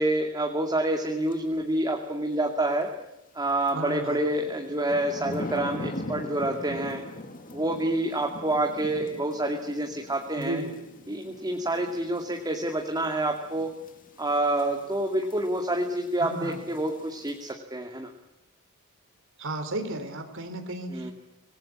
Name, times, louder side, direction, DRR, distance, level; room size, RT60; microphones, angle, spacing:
voice 1, 0.0-2.9 3.3-7.0 7.5-10.6 11.1-13.7 14.2-18.1 20.9-21.1, right 1 dB, 20° right, 2 dB, 2.4 m, -28 dB
sound 1, 1.3-1.4 3.7-17.5, left 1 dB, 40° left, 2.4 m, -42 dB
voice 2, 3.7-4.2 10.4-10.7 16.2-16.6 19.4-21.1, right 1 dB, 60° right, 7 dB, 4.1 m, -33 dB
26.5 x 20.0 x 8.7 m, 0.90 s
head